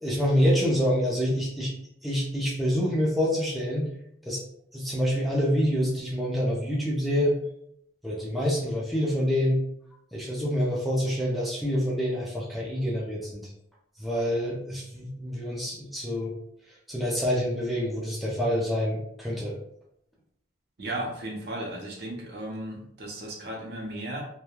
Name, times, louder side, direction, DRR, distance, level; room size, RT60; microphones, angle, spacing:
voice 1, 0.0-1.7 2.0-3.9 4.3-4.4 4.7-7.4 8.0-9.6 10.1-13.5 14.0-16.3 16.9-19.6, equal, ahead, -5 dB, 0.5 m, -26 dB
voice 2, 20.8-24.2, right 1 dB, 60° right, -1 dB, 0.7 m, -35 dB
3.0 x 2.2 x 2.2 m, 0.74 s
head